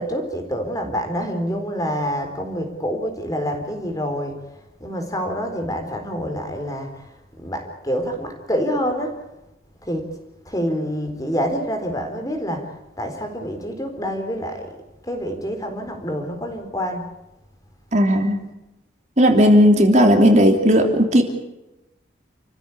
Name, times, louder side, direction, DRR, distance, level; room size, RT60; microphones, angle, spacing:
voice 1, 0.0-4.4 4.8-7.1 7.4-9.2 9.8-10.0 10.5-12.7 13.0-14.7 15.0-17.1, equal, 20° left, 5 dB, 4.1 m, -27 dB
voice 2, 17.9-18.4 19.2-21.2, equal, 40° right, 4 dB, 3.1 m, -14 dB
29.5 x 15.5 x 8.6 m, 0.95 s
head